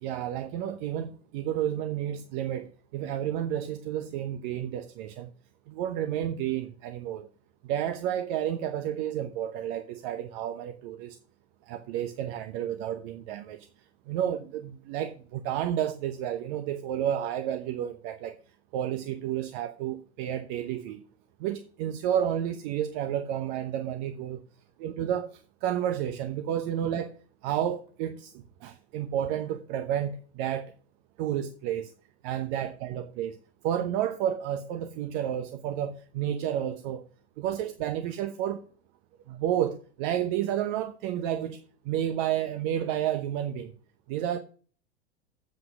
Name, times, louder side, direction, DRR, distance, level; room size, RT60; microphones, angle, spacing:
voice 1, 0.0-5.3 5.7-7.3 7.6-11.2 11.7-13.7 14.1-18.4 18.7-21.0 21.4-24.4 24.8-27.1 27.4-30.7 31.2-31.9 32.2-33.4 33.6-37.0 37.4-38.6 39.3-43.7 44.1-44.4, right 10 dB, 45° right, 0.9 m, -31 dB
7.8 x 7.7 x 6.0 m
figure-of-eight pair, 95°, 34 cm